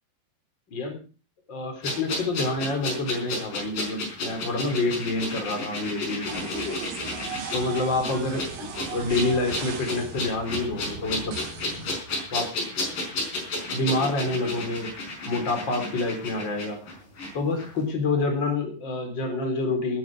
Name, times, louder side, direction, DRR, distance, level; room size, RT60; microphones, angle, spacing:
voice 1, 0.7-1.0 1.5-6.8 7.5-11.4 12.3-12.5 13.7-14.9 15.3-16.8 17.3-20.0, left 2 dB, 30° left, 4 dB, 4.2 m, -27 dB
sound 1, 1.8-17.3 17.6-17.7, left 2 dB, 65° left, 6.5 m, -33 dB
sound 2, 6.3-12.0, right 5 dB, 70° right, 4.1 m, -37 dB
19.5 x 9.3 x 4.9 m, 0.35 s
omnidirectional pair, 4.2 m